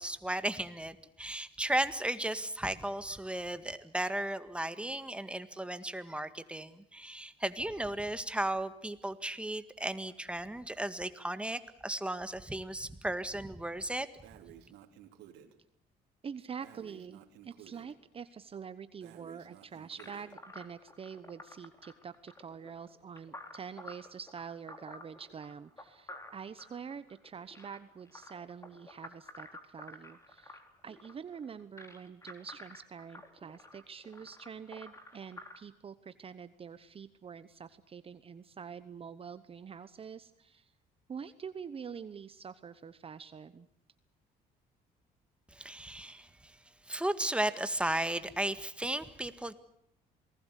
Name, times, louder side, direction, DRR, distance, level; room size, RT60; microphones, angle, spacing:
voice 1, 0.0-14.1 45.5-46.6 46.9-49.5, right 1 dB, 5° right, 11 dB, 1.8 m, -35 dB
Breathing, 14.2-15.5 16.6-17.9 19.0-20.3, right 10 dB, 90° right, 3.1 m, -54 dB
voice 2, 16.2-40.7 41.1-43.7, right 6 dB, 35° right, 13 dB, 1.0 m, -46 dB
sound 1, 20.0-35.6, left 1 dB, 15° left, 3.7 m, -51 dB
28.0 x 19.5 x 8.3 m, 0.71 s
cardioid pair, 110°, 17 cm